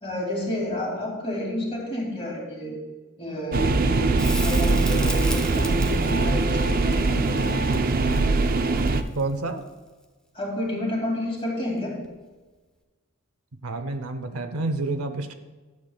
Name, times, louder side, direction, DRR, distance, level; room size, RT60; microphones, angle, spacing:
voice 1, 0.0-2.8 3.2-7.3 10.3-12.1, left 1 dB, 25° left, -2 dB, 2.4 m, -30 dB
sound 1, 3.5-9.0, right 3 dB, 40° right, 0.4 m, -22 dB
Crackle, 4.2-9.3 12.0-12.1, equal, 5° left, 0.8 m, -37 dB
voice 2, 9.1-9.6 13.6-15.3, right 2 dB, 75° right, 8 dB, 0.7 m, -29 dB
11.5 x 8.1 x 2.3 m, 1.3 s
head